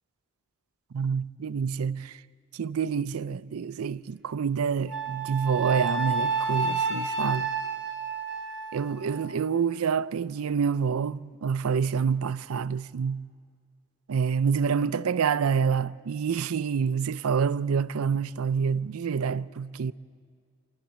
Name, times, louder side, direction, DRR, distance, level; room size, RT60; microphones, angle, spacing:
voice 1, 0.9-2.1 2.5-7.5 8.7-13.2 14.1-19.9, right 6 dB, 85° right, 0.4 m, -27 dB
Wind instrument woodwind instrument, 4.9-9.3, right 4 dB, 5° right, 2.3 m, -30 dB
27.5 x 11.5 x 8.6 m
head